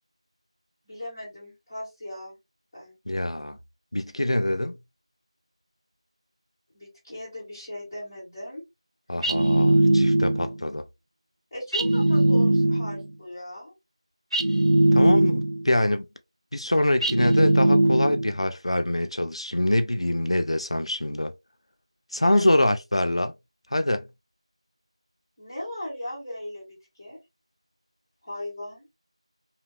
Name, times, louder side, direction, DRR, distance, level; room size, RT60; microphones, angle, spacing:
voice 1, 0.8-2.4 2.7-3.0 6.7-8.6 11.5-13.7 22.1-22.5 25.4-26.6 27.0-27.2 28.2-28.9, left 1 dB, 5° left, 0.5 m, -38 dB
voice 2, 3.1-3.6 3.9-4.8 9.1-10.9 14.9-16.1 16.5-21.3 22.1-23.3 23.7-24.1, left 1 dB, 60° left, 0.4 m, -24 dB
sound 1, 9.2-10.6 11.7-13.1 14.3-15.7 17.0-18.4, right 1 dB, 65° right, 0.5 m, -20 dB
2.7 x 2.0 x 2.3 m
figure-of-eight pair, 175°, 3 cm